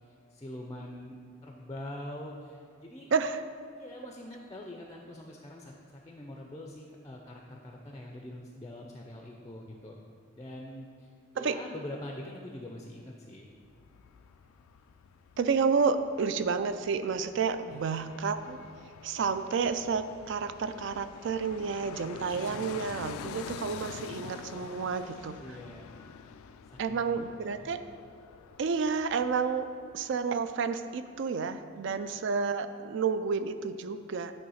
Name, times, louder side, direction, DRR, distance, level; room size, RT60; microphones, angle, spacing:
voice 1, 0.1-3.1 3.7-10.0 10.3-11.1 11.3-13.5 17.7-18.2 25.4-25.9 26.7-27.7 31.7-32.0, left 1 dB, 15° left, 1 dB, 0.4 m, -44 dB
voice 2, 3.1-3.4 11.4-11.6 15.4-18.6 19.0-25.4 26.8-27.8 28.6-29.7 29.9-34.3, right 5 dB, 60° right, 11 dB, 0.3 m, -30 dB
Fixed-wing aircraft airplane, 13.6-30.5 30.8-30.9, left 7 dB, 90° left, 0.3 m, -47 dB
9.4 x 3.2 x 5.5 m, 2.2 s
head